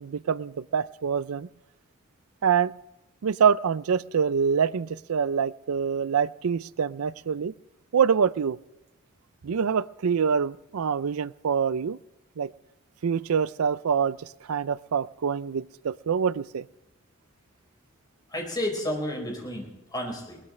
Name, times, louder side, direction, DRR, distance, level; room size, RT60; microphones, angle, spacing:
voice 1, 0.0-1.5 2.4-2.7 3.2-7.5 7.9-8.6 9.4-12.0 12.4-12.5 13.0-16.6, right 6 dB, 85° right, 18 dB, 0.5 m, -25 dB
voice 2, 18.3-20.4, left 1 dB, 20° left, 0 dB, 4.5 m, -31 dB
21.5 x 19.5 x 3.3 m, 0.97 s
head